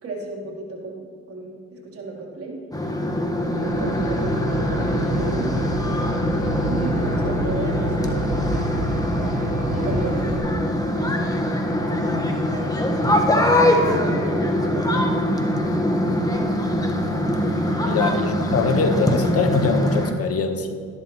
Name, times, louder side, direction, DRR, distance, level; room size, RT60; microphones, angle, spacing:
voice 1, 0.0-2.6 3.5-5.5 6.4-8.5 9.8-11.4 12.4-12.8 13.8-15.2 17.7-18.1, right 3 dB, 50° right, -2 dB, 3.1 m, -34 dB
sound 1, 2.7-20.1, left 1 dB, 10° left, 1.2 m, -23 dB
Aircraft, 3.7-10.4, right 1 dB, 25° right, 1.5 m, -28 dB
voice 2, 17.8-20.7, left 4 dB, 50° left, 7 dB, 1.0 m, -22 dB
13.0 x 11.5 x 3.0 m, 2.1 s
cardioid pair, 90°, 30 cm